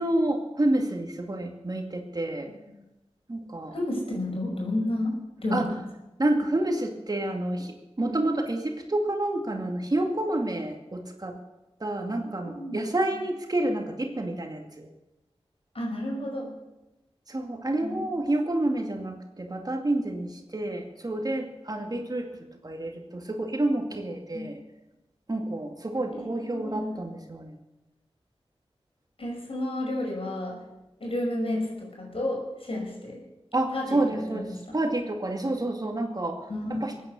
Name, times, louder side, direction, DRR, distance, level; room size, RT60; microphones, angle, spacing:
voice 1, 0.0-2.5 3.3-3.7 5.5-5.7 6.2-11.3 11.8-14.9 17.3-22.3 22.6-24.6 25.3-27.5 33.5-36.4 36.7-37.0, right 1 dB, 40° right, 3 dB, 2.3 m, -29 dB
voice 2, 3.7-5.8 12.4-12.8 15.7-16.5 17.8-18.1 24.3-24.5 26.1-27.0 29.2-30.6 31.0-33.2 33.7-34.7 36.5-36.9, left 1 dB, 65° left, -1 dB, 5.8 m, -31 dB
22.0 x 9.5 x 6.9 m, 1.0 s
wide cardioid pair, 70°, 10 cm